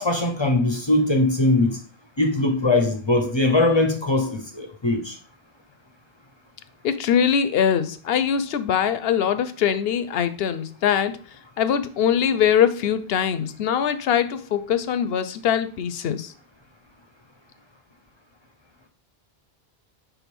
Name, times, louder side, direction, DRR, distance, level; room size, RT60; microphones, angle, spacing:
voice 1, 0.0-1.8 2.2-5.2, left 2 dB, 30° left, 0.6 m, -21 dB
voice 2, 6.8-11.2 11.6-16.3, left 8 dB, 75° left, 0.8 m, -22 dB
4.8 x 3.7 x 5.3 m
omnidirectional pair, 1.0 m